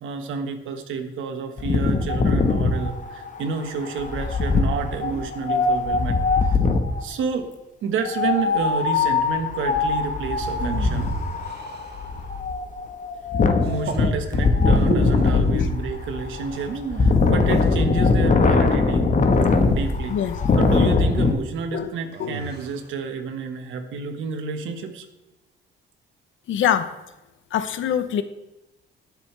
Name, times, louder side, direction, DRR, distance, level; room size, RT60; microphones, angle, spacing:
voice 1, 0.0-6.2 6.4-6.6 7.0-7.5 7.8-11.1 13.6-19.1 19.7-20.2 20.6-25.1, right 5 dB, 80° right, 5 dB, 1.6 m, -30 dB
Wind, 1.6-7.0 8.1-21.3, left 4 dB, 40° left, 1.4 m, -21 dB
sound 1, 10.4-12.4 13.6-14.1 14.8-15.4 16.5-17.8 19.3-20.5 22.1-22.9, right 5 dB, 55° right, 1.7 m, -34 dB
voice 2, 26.5-26.9 27.5-28.2, left 9 dB, 75° left, 11 dB, 0.9 m, -24 dB
19.5 x 6.8 x 3.4 m, 1.0 s
cardioid pair, 90°, 20 cm